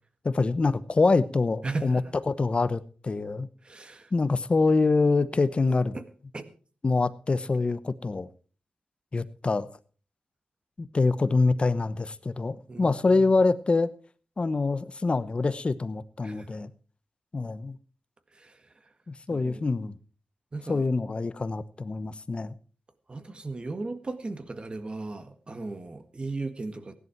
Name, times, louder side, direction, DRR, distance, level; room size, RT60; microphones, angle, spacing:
voice 1, 0.2-2.0 2.3-3.5 4.1-6.0 6.8-8.3 9.1-9.7 10.8-13.9 14.4-16.7 17.3-17.8 19.3-19.9 20.7-22.5, left 3 dB, 40° left, 1.0 m, -25 dB
voice 2, 1.6-2.0 3.6-4.1 5.9-6.0 6.3-6.4 12.7-13.3 16.2-16.5 18.4-18.6 19.3-19.7 20.5-20.8 23.1-26.9, right 3 dB, 35° right, 1.8 m, -36 dB
16.0 x 11.0 x 4.6 m
wide cardioid pair, 85°, 3 cm